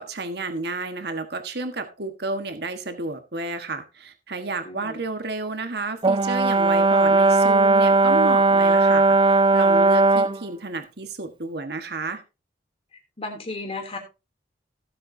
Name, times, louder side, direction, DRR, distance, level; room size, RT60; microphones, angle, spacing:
voice 1, 0.0-12.2, right 3 dB, 60° right, 7 dB, 1.5 m, -31 dB
voice 2, 4.6-5.0 13.2-14.0, left 2 dB, 30° left, 4 dB, 3.0 m, -34 dB
Brass instrument, 6.0-10.4, right 3 dB, 25° right, 0.4 m, -17 dB
17.0 x 7.7 x 2.8 m, 0.29 s
head